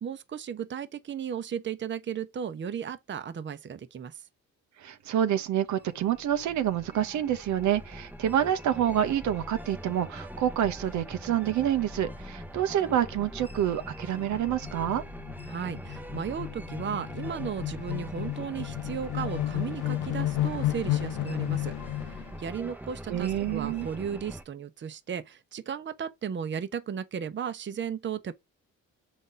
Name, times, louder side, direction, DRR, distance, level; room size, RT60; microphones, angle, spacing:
voice 1, 0.0-4.2 15.5-28.3, right 7 dB, 40° right, 0.8 m, -35 dB
voice 2, 4.8-15.0 23.1-23.9, right 10 dB, 70° right, 0.8 m, -27 dB
sound 1, 5.5-24.4, equal, 5° right, 0.8 m, -43 dB
sound 2, 11.9-12.0 12.3-12.4 12.7-22.4, left 14 dB, 85° left, 0.6 m, -33 dB
6.1 x 4.1 x 3.8 m
cardioid pair, 90°, 30 cm